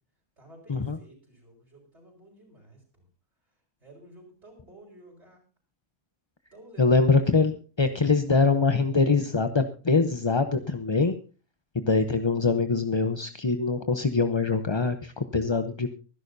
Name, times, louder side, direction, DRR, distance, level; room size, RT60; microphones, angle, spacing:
voice 1, 0.4-2.8 3.8-5.4 6.5-7.2, right 1 dB, 50° right, -5 dB, 5.8 m, -52 dB
voice 2, 6.8-11.1 11.7-15.9, left 4 dB, 25° left, 8 dB, 0.7 m, -23 dB
24.0 x 11.5 x 2.7 m, 0.36 s
omnidirectional pair, 1.5 m